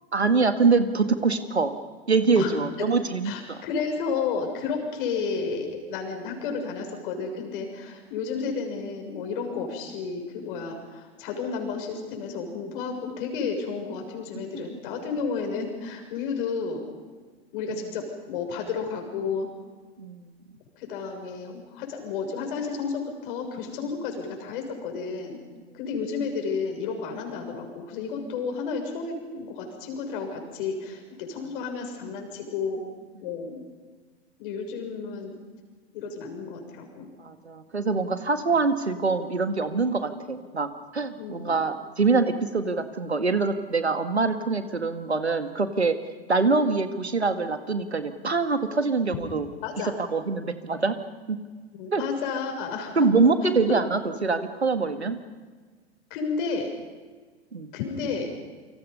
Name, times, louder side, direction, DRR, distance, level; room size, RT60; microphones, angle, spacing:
voice 1, 0.1-1.8 2.1-3.6 20.0-20.3 37.2-46.0 46.3-49.5 50.1-51.0 51.3-51.4 51.9-52.0 53.0-55.2 57.5-57.7, right 4 dB, 85° right, 9 dB, 1.9 m, -24 dB
voice 2, 3.2-16.9 17.5-19.5 20.8-25.4 25.7-32.8 33.2-33.6 34.4-35.3 35.9-37.1 41.2-41.6 49.6-49.9 51.7-53.5 56.1-56.7 57.7-58.3, left 5 dB, 55° left, 3 dB, 7.0 m, -32 dB
28.5 x 26.0 x 5.5 m, 1.4 s
figure-of-eight pair, 90°, 32 cm